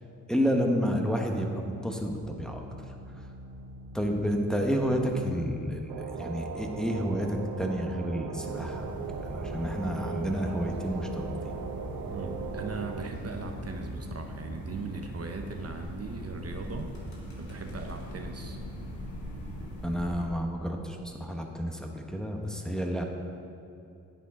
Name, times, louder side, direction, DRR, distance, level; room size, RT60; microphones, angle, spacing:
voice 1, 0.3-2.6 3.9-11.6 19.8-23.0, equal, ahead, 2 dB, 1.2 m, -30 dB
sound 1, 2.0-19.8, right 3 dB, 70° right, 2.4 m, -47 dB
sound 2, 5.9-13.1, right 6 dB, 85° right, 0.6 m, -39 dB
sound 3, 8.4-20.3, left 1 dB, 80° left, 1.8 m, -41 dB
voice 2, 12.1-16.9 17.4-18.6 20.1-20.3, right 4 dB, 45° right, 3 dB, 0.9 m, -39 dB
10.0 x 8.3 x 3.8 m, 2.7 s
supercardioid pair, 55°, 35 cm